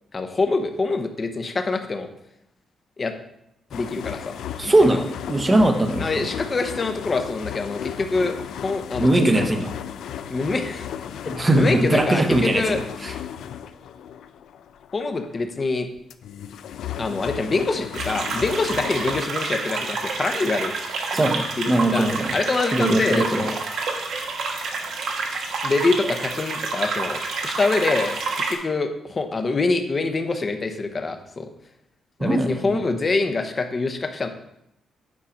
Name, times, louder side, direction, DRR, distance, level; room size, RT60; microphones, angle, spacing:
voice 1, 0.1-2.1 3.0-3.1 3.7-4.7 6.0-8.4 8.6-9.2 10.3-10.9 11.2-12.8 14.9-15.9 17.0-20.7 21.6-22.1 22.3-23.6 25.6-28.2 28.5-31.5 32.2-34.3, left 3 dB, 25° left, 7 dB, 0.8 m, -25 dB
sound 1, 3.7-15.7 16.0-19.2, left 9 dB, 80° left, 0.5 m, -35 dB
voice 2, 4.6-6.3 9.0-9.7 11.3-12.7 13.0-13.1 21.1-22.3 22.7-23.5 32.2-32.8, right 1 dB, 15° right, 5 dB, 0.8 m, -20 dB
sound 2, 17.9-28.5, right 4 dB, 70° right, 1.3 m, -28 dB
8.5 x 5.6 x 5.0 m, 0.80 s
wide cardioid pair, 165°, 0 cm